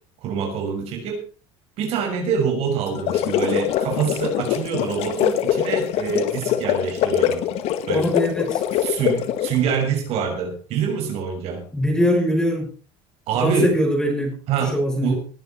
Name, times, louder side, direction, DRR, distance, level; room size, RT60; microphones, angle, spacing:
voice 1, 0.2-1.2 1.8-7.5 7.9-8.1 8.8-11.6 13.3-13.8 14.5-15.2, right 6 dB, 55° right, 4 dB, 6.2 m, -25 dB
sound 1, 2.9-9.7, left 10 dB, 55° left, 1.9 m, -23 dB
voice 2, 7.9-8.6 11.7-12.7 13.4-14.3 14.6-15.2, equal, 5° left, 3 dB, 5.8 m, -22 dB
20.0 x 10.5 x 4.5 m, 0.37 s
supercardioid pair, 125°, 12 cm